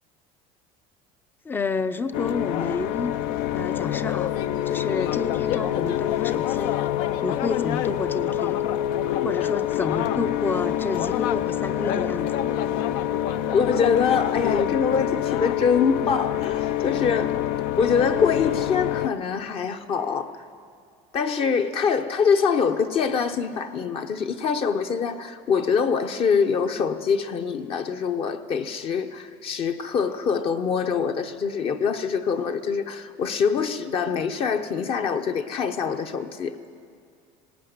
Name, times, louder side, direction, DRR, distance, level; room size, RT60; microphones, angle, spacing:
voice 1, 1.4-3.2 3.5-4.4 4.7-6.8 7.2-8.6 9.2-12.3, left 3 dB, 15° left, 13 dB, 0.6 m, -30 dB
sound 1, 2.1-19.1, left 12 dB, 65° left, 0.7 m, -26 dB
voice 2, 13.5-17.4 17.8-20.3 21.1-36.6, left 6 dB, 35° left, 7 dB, 0.9 m, -24 dB
19.5 x 18.0 x 9.5 m, 2.3 s
cardioid pair, 160°, 16 cm